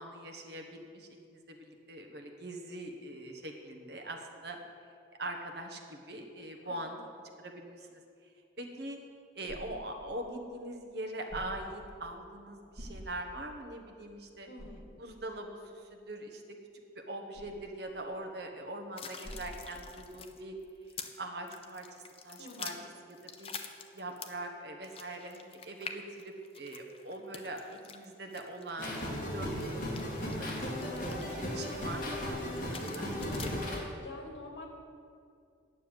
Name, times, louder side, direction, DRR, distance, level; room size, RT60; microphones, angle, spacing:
voice 1, 0.0-4.6 5.2-7.0 7.4-8.0 8.6-9.0 9.3-14.5 15.0-16.4 16.9-20.6 21.2-22.7 23.1-23.5 23.9-27.6 27.9-28.9 29.3-33.7, right 1 dB, 60° right, 3 dB, 1.3 m, -42 dB
voice 2, 6.6-7.0 14.5-14.9 22.4-22.8 34.0-34.7, left 2 dB, 75° left, 1 dB, 2.0 m, -47 dB
sound 1, 8.6-20.3, equal, 35° right, 3.3 m, -53 dB
sound 2, 19.0-21.2 21.5-24.5 24.8-32.1 32.5-33.5, left 6 dB, 30° left, 0.6 m, -47 dB
sound 3, 28.8-33.8, equal, 45° left, 2.3 m, -36 dB
9.6 x 6.9 x 8.9 m, 2.4 s
head